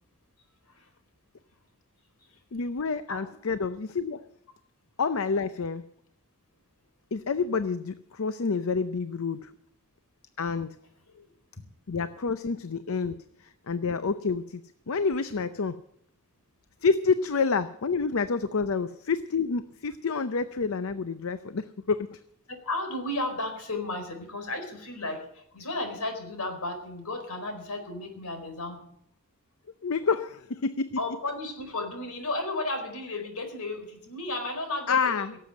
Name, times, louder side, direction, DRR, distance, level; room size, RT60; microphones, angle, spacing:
voice 1, 2.5-4.2 5.0-5.8 7.1-9.5 10.4-10.8 11.9-15.8 16.8-22.2 29.8-30.9 34.9-35.3, left 5 dB, 65° left, 12 dB, 0.6 m, -28 dB
voice 2, 22.5-28.8 31.0-35.4, left 2 dB, 85° left, 5 dB, 4.5 m, -34 dB
17.5 x 7.7 x 9.5 m, 0.70 s
head